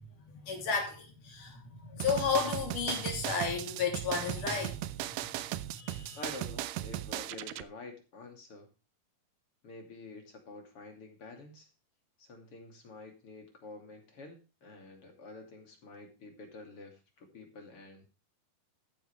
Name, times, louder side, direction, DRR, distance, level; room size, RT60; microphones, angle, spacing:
voice 1, 0.3-4.9 5.7-6.2, left 5 dB, 60° left, 4.5 m, -33 dB
sound 1, 2.0-7.6, right 14 dB, 80° right, 2.1 m, -37 dB
voice 2, 6.1-8.7 9.6-11.7 12.2-18.1, left 3 dB, 40° left, 3.3 m, -48 dB
14.0 x 9.6 x 3.3 m
omnidirectional pair, 4.3 m